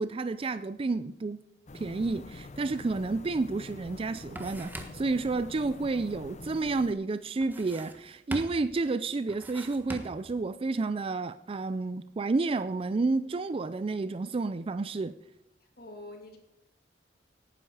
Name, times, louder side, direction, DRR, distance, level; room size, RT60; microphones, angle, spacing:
voice 1, 0.0-1.4 1.7-15.2, right 3 dB, 30° right, 0.4 m, -30 dB
sound 1, 1.7-6.9, left 2 dB, 40° left, 0.6 m, -46 dB
sound 2, 3.5-3.6 3.9-5.2 7.4-8.1 8.3-8.8 9.3-10.3, right 1 dB, 10° right, 1.4 m, -42 dB
voice 2, 15.6-16.4, left 1 dB, 60° left, 2.8 m, -46 dB
18.0 x 10.0 x 4.8 m
head